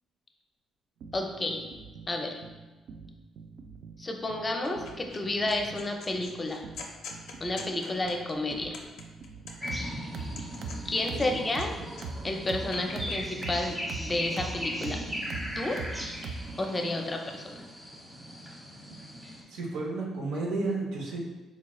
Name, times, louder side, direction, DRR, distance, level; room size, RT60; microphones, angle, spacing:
sound 1, 1.0-16.7, right 4 dB, 70° right, 0.3 m, -41 dB
voice 1, 1.1-1.6 2.1-2.4 4.0-6.6 7.4-8.8 10.8-11.7 12.2-15.0 15.6-15.8 16.6-17.6, left 2 dB, 25° left, 3 dB, 0.5 m, -31 dB
sound 2, 4.6-5.2 5.5-9.8 10.2-11.7 11.9-13.2, left 4 dB, 85° left, 0.4 m, -45 dB
sound 3, 9.6-19.4, equal, 5° right, 0.9 m, -39 dB
voice 2, 19.5-21.2, right 3 dB, 85° right, -2 dB, 0.7 m, -32 dB
4.1 x 3.0 x 2.3 m, 1.2 s
cardioid pair, 90°, 0 cm